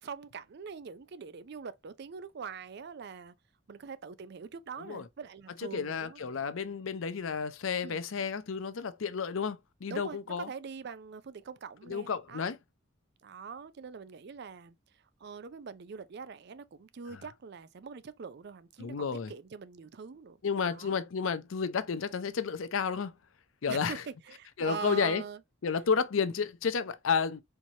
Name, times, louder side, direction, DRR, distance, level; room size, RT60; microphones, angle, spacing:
voice 1, 0.0-3.3 3.7-6.2 7.8-8.0 9.9-12.5 13.2-14.7 15.2-20.4 20.6-21.0 23.7-25.4, right 5 dB, 55° right, 0.4 m, -43 dB
voice 2, 5.6-10.5 11.9-12.6 17.1-17.2 18.8-19.3 20.4-23.1 23.6-24.0 24.6-25.2 25.6-27.4, left 6 dB, 90° left, 0.6 m, -31 dB
4.5 x 2.9 x 2.7 m
head